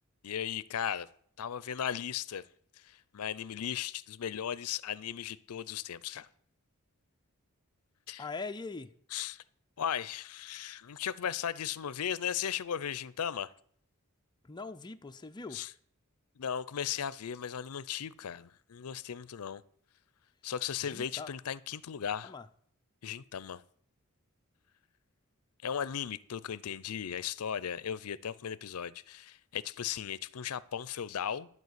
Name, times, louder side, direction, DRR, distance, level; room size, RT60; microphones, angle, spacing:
voice 1, 0.2-1.1 1.4-2.4 2.8-6.3 8.1-8.3 9.1-9.4 9.8-13.5 15.5-15.7 16.4-19.6 20.4-22.3 23.0-23.6 25.6-31.5, left 8 dB, 80° left, 0.5 m, -36 dB
voice 2, 8.2-8.9 14.4-15.6 20.8-21.3 22.2-22.5, left 3 dB, 20° left, 0.5 m, -42 dB
12.0 x 4.6 x 8.1 m
head